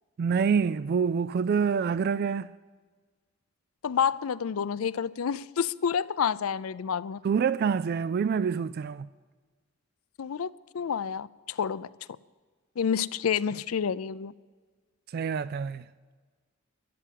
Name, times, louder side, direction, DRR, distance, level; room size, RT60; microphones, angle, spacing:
voice 1, 0.2-2.5 7.2-9.1 15.1-15.9, right 6 dB, 50° right, 0.3 m, -26 dB
voice 2, 3.8-7.2 10.2-11.9 12.8-14.3, left 7 dB, 85° left, 0.5 m, -29 dB
12.5 x 11.5 x 7.6 m
head